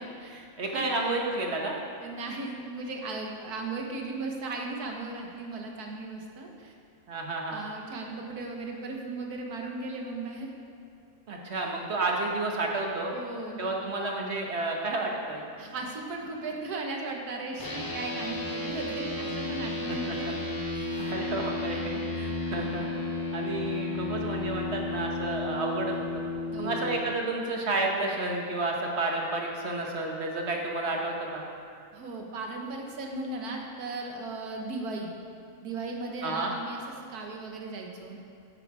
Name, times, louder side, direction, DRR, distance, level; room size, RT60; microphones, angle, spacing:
voice 1, 0.0-0.5 0.7-0.9 2.0-6.7 7.5-10.5 13.1-13.7 15.6-20.3 20.7-21.1 26.5-27.0 31.9-35.1 35.6-38.2, right 3 dB, 85° right, 1 dB, 1.6 m, -37 dB
voice 2, 0.6-1.8 7.1-7.6 11.3-13.1 13.6-15.4 19.9-20.3 21.0-22.9 23.3-26.2 26.6-31.4 36.2-36.5, right 2 dB, 50° right, 0 dB, 1.2 m, -31 dB
sound 1, 17.6-27.0, left 2 dB, 20° left, 0.5 m, -33 dB
9.7 x 8.0 x 4.7 m, 2.3 s
omnidirectional pair, 1.6 m